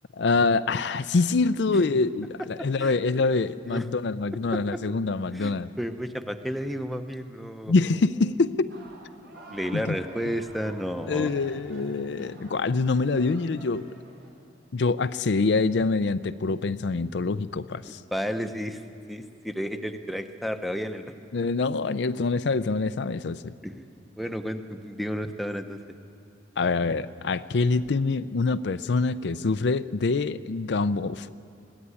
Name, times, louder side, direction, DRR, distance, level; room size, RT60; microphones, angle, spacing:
voice 1, 0.2-5.7 7.7-8.7 9.7-10.0 11.1-13.9 14.7-18.0 21.3-23.5 26.6-31.3, left 3 dB, 65° left, 14 dB, 0.5 m, -25 dB
voice 2, 2.6-2.9 3.7-3.9 4.5-4.8 5.3-7.7 9.5-11.3 18.1-18.8 19.1-21.1 23.6-23.9 24.2-25.8, equal, ahead, 7 dB, 0.9 m, -32 dB
sound 1, 8.7-14.3, right 2 dB, 65° right, 5.0 m, -49 dB
21.5 x 15.5 x 9.7 m, 2.5 s
head